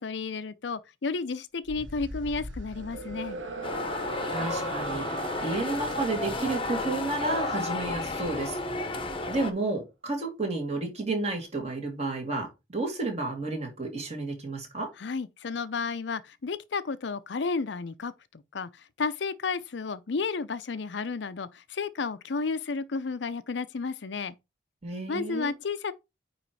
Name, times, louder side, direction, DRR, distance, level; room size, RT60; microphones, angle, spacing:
voice 1, 0.0-3.4 15.0-24.3 25.1-25.9, left 4 dB, 65° left, 0.5 m, -32 dB
sound 1, 1.7-9.0, right 2 dB, 80° right, 1.4 m, -40 dB
sound 2, 3.6-9.5, left 2 dB, 30° left, 0.9 m, -32 dB
voice 2, 4.3-8.6 9.3-14.9 24.8-25.5, right 2 dB, 35° right, 2.5 m, -31 dB
9.2 x 3.1 x 4.7 m
head